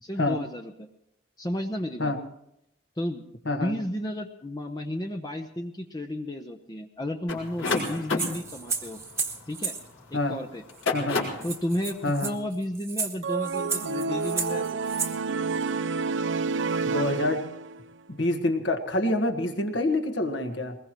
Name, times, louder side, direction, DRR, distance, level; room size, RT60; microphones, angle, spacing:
voice 1, 0.0-0.9 1.4-2.1 3.0-9.0 9.5-9.8 10.1-10.6 11.4-14.8, left 1 dB, 20° left, 4 dB, 0.7 m, -33 dB
voice 2, 3.4-3.8 10.1-10.4 10.9-11.2 12.0-12.3 16.9-17.5 18.1-20.8, left 1 dB, 60° left, 6 dB, 1.5 m, -26 dB
sound 1, 7.3-10.0 10.6-11.5, left 3 dB, 80° left, 4.5 m, -30 dB
sound 2, 7.7-9.8 10.8-10.9 11.1-11.2 11.4-15.2, right 4 dB, 15° right, 1.2 m, -33 dB
sound 3, 13.2-17.9, right 4 dB, 65° right, 0.5 m, -29 dB
22.0 x 20.5 x 3.1 m, 0.80 s
head